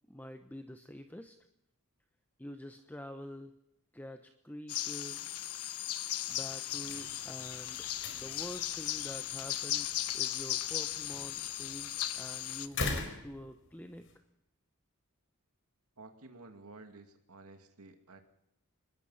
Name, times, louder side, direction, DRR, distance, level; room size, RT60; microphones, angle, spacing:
voice 1, 0.1-1.4 2.4-3.5 3.9-5.4 6.3-7.9 8.1-14.0, left 1 dB, 10° left, 8 dB, 1.0 m, -47 dB
sound 1, 4.7-12.7, left 12 dB, 85° left, 1.2 m, -37 dB
sound 2, 6.7-14.2, left 3 dB, 60° left, 4.7 m, -43 dB
voice 2, 16.0-18.2, right 3 dB, 80° right, 6 dB, 2.3 m, -52 dB
25.0 x 20.5 x 5.7 m, 0.79 s
head